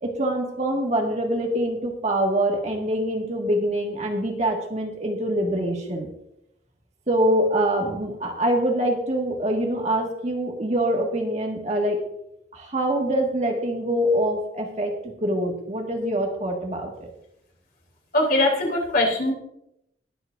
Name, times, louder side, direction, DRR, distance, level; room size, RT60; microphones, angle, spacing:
voice 1, 0.0-6.1 7.1-12.0 12.5-17.1, right 1 dB, 40° right, 1 dB, 1.7 m, -24 dB
voice 2, 18.1-19.3, left 1 dB, 55° left, 0 dB, 2.9 m, -21 dB
20.5 x 7.9 x 2.5 m, 0.80 s
head